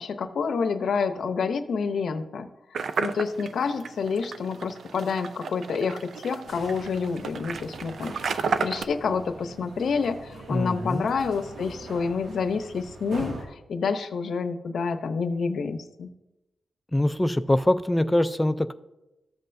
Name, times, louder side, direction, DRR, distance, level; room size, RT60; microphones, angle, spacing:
voice 1, 0.0-2.5 3.0-16.1, left 5 dB, 70° left, 9 dB, 0.6 m, -28 dB
sound 1, 2.7-8.8, right 5 dB, 65° right, 0.5 m, -32 dB
sound 2, 6.4-13.5, right 2 dB, 90° right, 2.0 m, -42 dB
voice 2, 10.5-11.1 16.9-18.7, left 1 dB, 10° left, 11 dB, 0.4 m, -23 dB
14.0 x 7.7 x 2.6 m, 0.96 s
wide cardioid pair, 150°, 0 cm